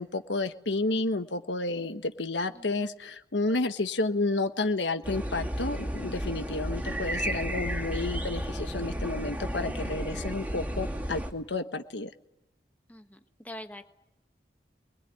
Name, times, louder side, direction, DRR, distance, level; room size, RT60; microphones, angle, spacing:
voice 1, 0.0-12.1, left 2 dB, 85° left, 9 dB, 1.3 m, -31 dB
voice 2, 2.6-2.9 12.9-13.2 13.4-13.9, equal, 10° left, 6 dB, 1.3 m, -44 dB
sound 1, 5.0-11.3, equal, 10° right, 2.3 m, -33 dB
27.0 x 21.5 x 9.4 m, 0.88 s
head